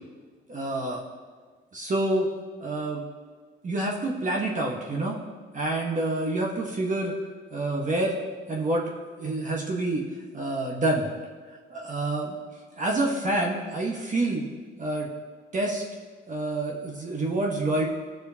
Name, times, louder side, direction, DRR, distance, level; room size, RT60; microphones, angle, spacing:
voice 1, 0.5-1.0 1.7-2.3 2.6-3.0 3.6-5.2 5.5-7.1 7.5-8.2 8.5-8.8 9.2-10.0 10.3-11.1 11.7-12.4 12.8-14.5 14.8-15.1 15.5-15.8 16.3-17.8, right 2 dB, 40° right, -2 dB, 1.4 m, -27 dB
16.0 x 6.4 x 2.9 m, 1.5 s
cardioid pair, 90°, 20 cm